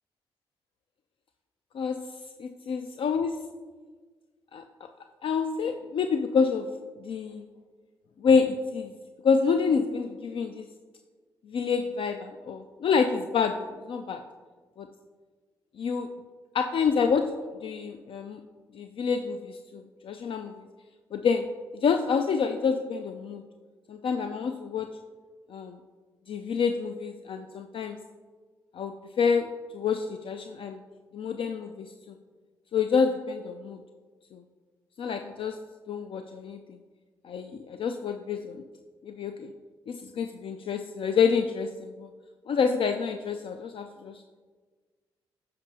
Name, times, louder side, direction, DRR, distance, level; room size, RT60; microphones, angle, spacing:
voice 1, 2.4-3.3 4.5-4.6 5.2-6.7 7.0-7.4 8.2-8.9 9.2-10.7 11.5-14.2 14.8-14.9 15.8-16.1 16.5-17.3 17.6-18.4 18.7-20.5 21.1-21.5 21.7-23.4 23.9-24.9 25.5-25.8 26.3-28.0 28.7-30.8 31.1-32.2 32.7-33.8 34.3-34.4 35.0-35.6 35.9-36.8 37.2-38.6 39.0-39.5 39.9-42.1 42.5-44.2, left 5 dB, 60° left, 7 dB, 0.4 m, -28 dB
9.5 x 5.2 x 2.8 m, 1.5 s
hypercardioid pair, 40°, 10 cm